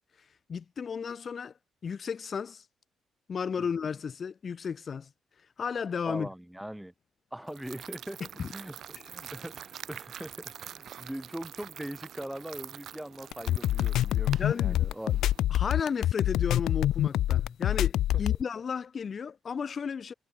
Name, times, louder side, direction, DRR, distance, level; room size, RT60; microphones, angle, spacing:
voice 1, 0.5-1.5 1.8-2.6 3.3-5.1 5.6-6.3 8.4-8.5 14.4-14.8 15.5-20.1, left 6 dB, 45° left, 1.8 m, -33 dB
voice 2, 6.1-6.9 7.3-8.2 8.5-15.3, right 1 dB, 5° right, 2.5 m, -41 dB
sound 1, 7.5-15.4, right 9 dB, 65° right, 3.5 m, -46 dB
sound 2, 13.3-18.4, left 13 dB, 80° left, 0.5 m, -26 dB
cardioid pair, 90°, 0 cm